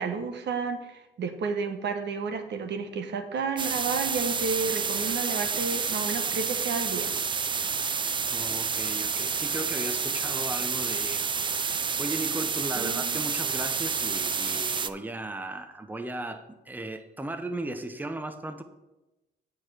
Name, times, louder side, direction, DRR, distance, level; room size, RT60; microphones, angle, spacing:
voice 1, 0.0-7.1 12.8-13.2, right 5 dB, 60° right, 7 dB, 1.1 m, -31 dB
sound 1, 3.6-14.9, right 5 dB, 25° right, 0.4 m, -29 dB
voice 2, 8.3-18.6, right 2 dB, 10° right, 8 dB, 0.8 m, -36 dB
8.1 x 4.7 x 6.5 m, 1.0 s
cardioid pair, 90°, 20 cm